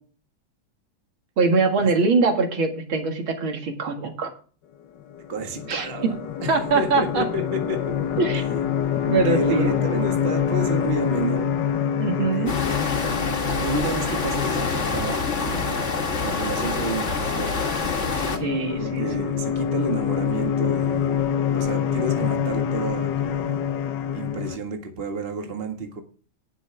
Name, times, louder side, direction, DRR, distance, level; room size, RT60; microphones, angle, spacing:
voice 1, 1.4-4.3 5.7-6.1 6.5-7.2 8.2-8.4 9.1-9.9 12.0-12.5 18.4-19.0, right 4 dB, 80° right, 4 dB, 2.8 m, -23 dB
sound 1, 5.1-24.6, left 8 dB, 65° left, 1.5 m, -26 dB
voice 2, 5.3-6.2 6.4-7.8 8.3-8.4 9.2-11.5 12.1-12.7 13.6-17.8 18.8-23.6 24.1-26.0, right 2 dB, 30° right, 4 dB, 1.7 m, -31 dB
sound 2, 12.5-18.4, left 4 dB, 40° left, 1.8 m, -26 dB
18.5 x 6.4 x 3.4 m, 0.40 s
omnidirectional pair, 2.2 m